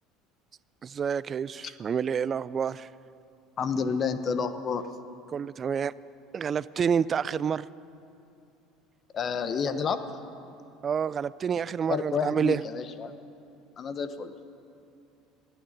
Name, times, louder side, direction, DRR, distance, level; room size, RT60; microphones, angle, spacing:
voice 1, 0.8-2.9 5.3-5.9 6.3-7.7 10.8-12.6, right 7 dB, 30° right, 19 dB, 0.3 m, -28 dB
voice 2, 3.6-4.9 9.1-10.0 11.9-13.1 13.8-14.3, left 6 dB, 35° left, 11 dB, 0.8 m, -30 dB
15.0 x 9.1 x 9.7 m, 2.6 s
supercardioid pair, 125°, 0 cm